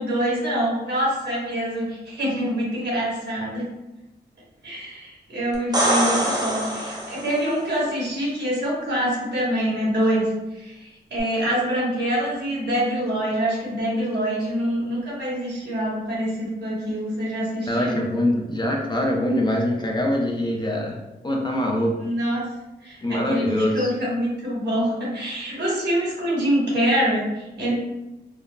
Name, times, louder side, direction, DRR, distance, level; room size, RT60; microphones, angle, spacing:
voice 1, 0.0-3.6 4.6-10.3 10.5-18.0 22.0-22.4 22.8-27.7, equal, 75° right, -6 dB, 1.1 m, -25 dB
sound 1, 5.5-7.5 11.2-11.3, right 1 dB, 25° right, 0.6 m, -24 dB
voice 2, 17.7-21.0 21.2-21.9 23.0-23.9, left 1 dB, 25° left, 0 dB, 0.4 m, -23 dB
3.5 x 2.0 x 2.2 m, 0.99 s
wide cardioid pair, 115°, 18 cm